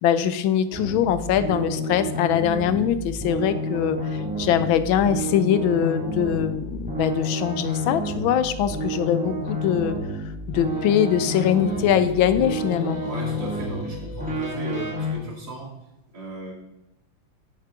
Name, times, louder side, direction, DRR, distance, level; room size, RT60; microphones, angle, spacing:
voice 1, 0.0-10.0 10.5-13.0, left 9 dB, 90° left, 12 dB, 1.4 m, -22 dB
sound 1, 0.7-15.1, equal, 5° right, 2.0 m, -30 dB
Singing, 10.5-15.6, left 7 dB, 65° left, 1.0 m, -41 dB
voice 2, 13.0-15.7 16.1-16.5, right 1 dB, 55° right, -4 dB, 2.9 m, -36 dB
8.3 x 7.4 x 3.7 m, 0.91 s
omnidirectional pair, 2.1 m